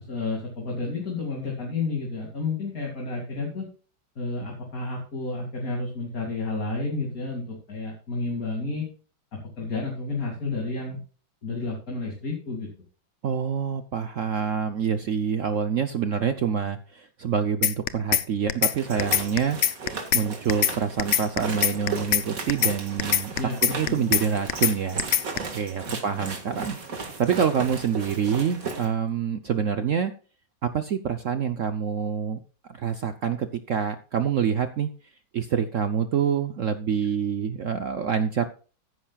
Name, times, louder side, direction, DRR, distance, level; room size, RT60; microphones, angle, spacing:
voice 1, 0.0-3.7 4.2-8.9 9.3-11.0 11.4-12.7 23.4-24.1, left 3 dB, 45° left, -1 dB, 2.9 m, -31 dB
voice 2, 13.2-19.6 20.1-23.3 23.6-25.0 25.5-30.1 30.6-32.4 32.7-34.9 35.3-38.5, right 7 dB, 65° right, 9 dB, 0.8 m, -26 dB
sound 1, 17.6-18.2 18.5-18.7 19.0-20.2 20.5-20.7 21.0-22.2 22.5-22.7 23.0-24.2 24.5-24.7 25.0-25.4, left 10 dB, 75° left, 0.6 m, -21 dB
sound 2, 18.7-28.9, right 4 dB, 45° right, 2.2 m, -36 dB
14.5 x 10.5 x 2.4 m, 0.37 s
omnidirectional pair, 2.1 m